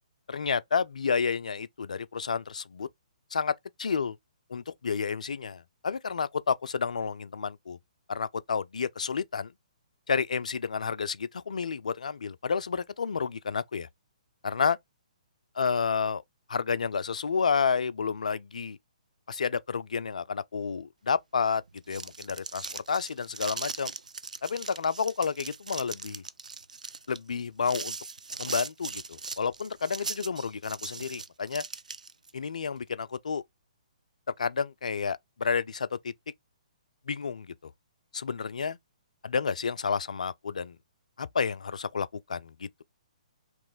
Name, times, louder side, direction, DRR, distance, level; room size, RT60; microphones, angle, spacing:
voice 1, 0.3-2.9 3.3-3.5 3.8-4.2 4.5-7.8 8.1-9.5 10.1-13.9 14.4-14.8 15.6-16.2 16.5-18.8 19.3-21.6 21.9-23.9 24.4-26.2 27.1-28.0 28.4-31.6 32.3-33.4 34.4-36.1 37.1-37.7 38.1-38.8 39.2-40.8 41.2-42.8, left 5 dB, 70° left, 0.3 m, -30 dB
sound 1, 21.7-32.3, right 4 dB, 80° right, 0.4 m, -39 dB
3.0 x 3.0 x 3.8 m
figure-of-eight pair, 130°, 4 cm